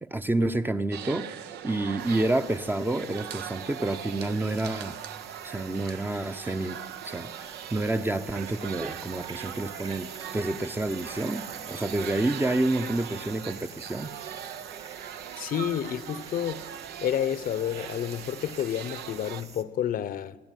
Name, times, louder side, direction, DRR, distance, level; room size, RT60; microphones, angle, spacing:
voice 1, 0.0-1.3 1.6-5.0 5.4-6.8 7.0-14.1, right 2 dB, 10° right, 0.8 m, -29 dB
sound 1, 0.9-19.4, right 9 dB, 80° right, 1.0 m, -40 dB
sound 2, 2.0-19.6, right 5 dB, 40° right, 1.9 m, -48 dB
voice 2, 15.4-16.6 17.0-20.4, left 10 dB, 55° left, 0.9 m, -30 dB
27.0 x 13.5 x 9.1 m
cardioid pair, 110°, 17 cm